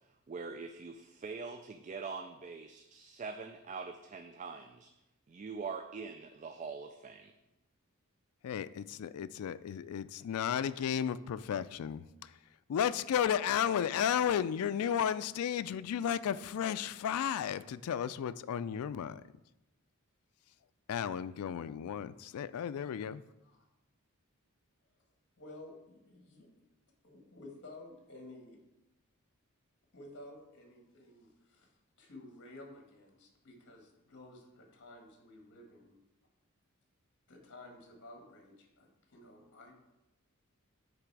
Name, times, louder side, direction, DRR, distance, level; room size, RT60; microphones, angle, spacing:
voice 1, 0.3-4.9 5.3-7.3, right 5 dB, 35° right, 0.3 m, -43 dB
voice 2, 8.4-12.0 12.7-19.2 20.9-23.2, left 8 dB, 80° left, 0.3 m, -33 dB
voice 3, 22.5-23.6 25.4-26.5 27.0-28.6 29.9-31.7 32.0-36.0 37.3-39.7, left 2 dB, 50° left, 1.6 m, -53 dB
9.9 x 3.3 x 4.7 m
head